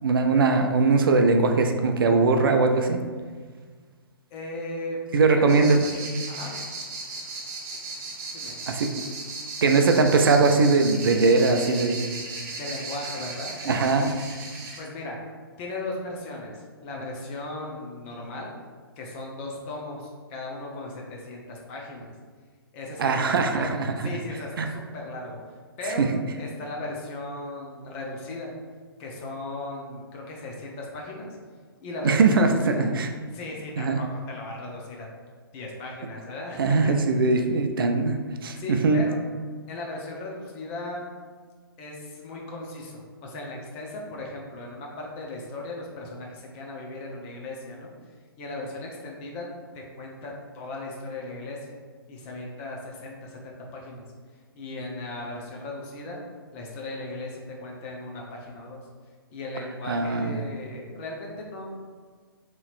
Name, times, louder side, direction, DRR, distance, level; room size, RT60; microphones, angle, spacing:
voice 1, 0.0-3.0 5.1-5.8 8.7-8.9 9.6-12.0 13.7-14.1 23.0-23.9 24.6-24.7 26.0-26.1 32.0-33.1 33.8-34.0 36.6-38.2 38.4-39.0 59.9-60.4, right 4 dB, 65° right, 5 dB, 0.4 m, -21 dB
voice 2, 4.3-5.0 5.2-5.8 6.3-6.6 8.3-8.5 12.6-13.5 14.8-15.2 15.6-18.5 19.0-22.1 22.7-23.1 23.4-23.7 24.0-25.4 25.8-26.1 26.4-28.5 29.0-31.4 31.8-32.9 33.3-35.1 35.5-36.9 38.5-39.2 39.7-41.0 41.8-47.9 48.4-49.5 49.7-51.7 52.1-54.0 54.5-56.2 56.5-58.8 59.3-61.8, left 2 dB, 30° left, -1 dB, 0.7 m, -37 dB
sound 1, 5.5-14.8, right 3 dB, 40° right, 0.9 m, -36 dB
4.0 x 3.0 x 2.5 m, 1.5 s
figure-of-eight pair, 130°, 13 cm